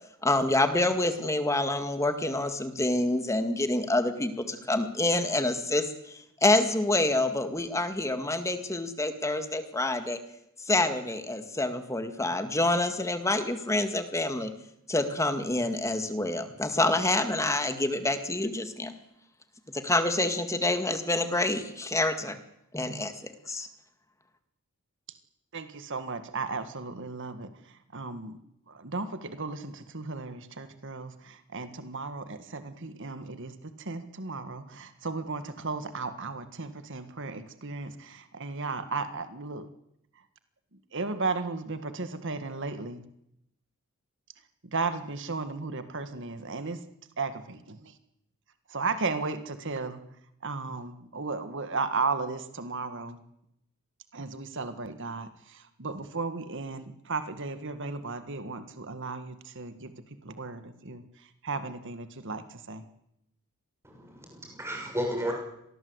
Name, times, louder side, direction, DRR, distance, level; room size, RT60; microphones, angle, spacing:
voice 1, 0.2-10.2 10.7-14.5 14.9-18.9 19.7-22.4 22.7-23.7, left 2 dB, 15° left, 8 dB, 1.9 m, -27 dB
voice 2, 25.5-27.5 27.9-28.4 28.7-33.5 33.9-39.7 40.9-43.0 44.7-46.8 47.2-47.8 48.7-50.0 50.4-53.2 54.1-55.3 55.8-59.9 60.3-61.0 61.4-62.8, right 4 dB, 55° right, 10 dB, 1.7 m, -35 dB
voice 3, 63.8-65.3, equal, 10° right, 1 dB, 6.7 m, -33 dB
25.5 x 19.5 x 8.1 m, 0.80 s
head